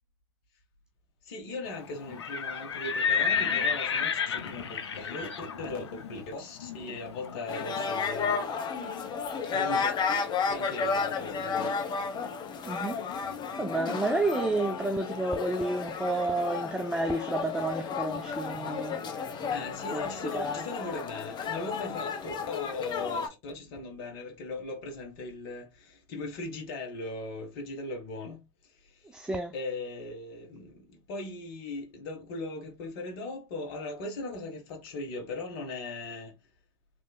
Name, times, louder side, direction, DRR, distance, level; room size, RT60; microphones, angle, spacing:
voice 1, 1.2-8.5 9.5-10.0 10.5-11.8 19.5-28.4 28.9-29.0 29.5-36.3, left 2 dB, 55° left, 1.1 m, -39 dB
Livestock farm animals working animals, 2.0-7.9, left 6 dB, 80° left, 0.6 m, -31 dB
sound 1, 7.5-23.3, left 5 dB, 30° left, 0.9 m, -33 dB
voice 2, 12.6-13.0 13.6-19.0 19.9-20.7 29.1-29.5, right 2 dB, 5° right, 0.4 m, -30 dB
3.3 x 2.9 x 2.3 m
figure-of-eight pair, 85°, 14 cm